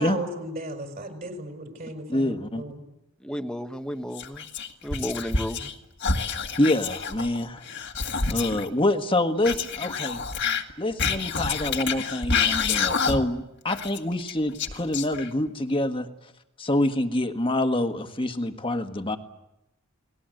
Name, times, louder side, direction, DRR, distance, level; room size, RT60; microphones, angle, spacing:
voice 1, 0.0-2.8, right 1 dB, 40° right, 5 dB, 5.0 m, -35 dB
voice 2, 2.1-2.6 6.6-7.6 8.3-10.2 10.8-16.1 16.6-19.2, left 1 dB, 25° left, 6 dB, 1.5 m, -26 dB
voice 3, 3.2-4.5 4.8-5.7, equal, 5° left, 7 dB, 1.2 m, -33 dB
Whispering, 4.1-5.7 6.0-8.7 9.4-13.4 13.7-15.5, left 5 dB, 50° left, 1.8 m, -28 dB
29.5 x 20.0 x 7.9 m, 0.88 s
head